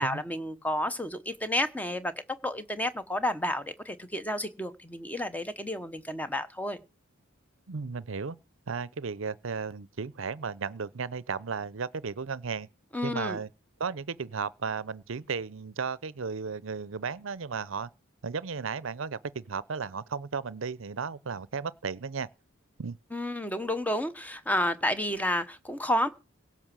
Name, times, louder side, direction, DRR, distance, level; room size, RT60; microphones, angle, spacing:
voice 1, 0.0-2.1 2.4-6.8 12.9-13.4 23.1-26.1, left 1 dB, 5° left, 0.9 m, -31 dB
voice 2, 7.7-8.4 8.7-12.7 13.0-13.5 13.8-17.9 18.2-22.3 22.8-23.0, right 5 dB, 65° right, 0.6 m, -34 dB
17.5 x 5.9 x 7.5 m
head